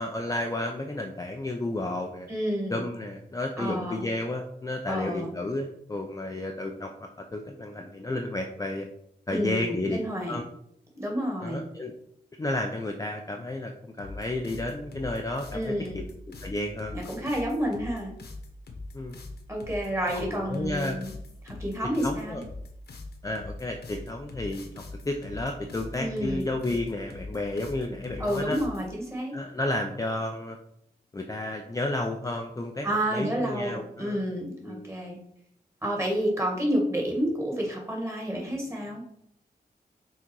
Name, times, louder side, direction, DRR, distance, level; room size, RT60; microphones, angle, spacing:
voice 1, 0.0-2.3 2.7-8.9 9.3-10.0 10.3-10.4 11.4-11.9 12.4-13.7 14.0-16.0 16.4-16.9 18.9-19.2 20.1-21.0 22.0-22.4 23.2-28.6 29.3-30.6 31.1-34.2 34.6-34.9, left 2 dB, 20° left, 2 dB, 0.6 m, -32 dB
voice 2, 2.3-2.8 3.6-4.1 4.9-5.3 9.3-10.4 10.9-11.6 15.5-16.0 16.9-18.1 19.5-21.1 21.4-22.4 26.0-26.5 28.2-29.3 32.8-35.2 35.8-39.0, equal, 15° right, -1 dB, 2.0 m, -30 dB
sound 1, 14.0-28.9, left 2 dB, 80° left, 1.3 m, -41 dB
6.1 x 4.0 x 4.7 m, 0.73 s
wide cardioid pair, 140°, 17 cm